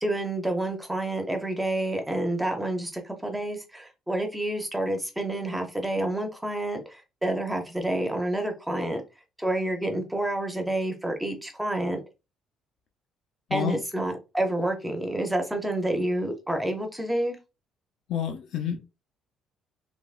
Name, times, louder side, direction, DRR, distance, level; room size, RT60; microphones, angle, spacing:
voice 1, 0.0-9.0 9.4-12.0 13.5-17.4, right 1 dB, 5° right, 0.6 m, -29 dB
voice 2, 13.5-13.8 18.1-18.8, left 8 dB, 60° left, 0.6 m, -29 dB
3.3 x 3.0 x 2.4 m
cardioid pair, 160°, 0 cm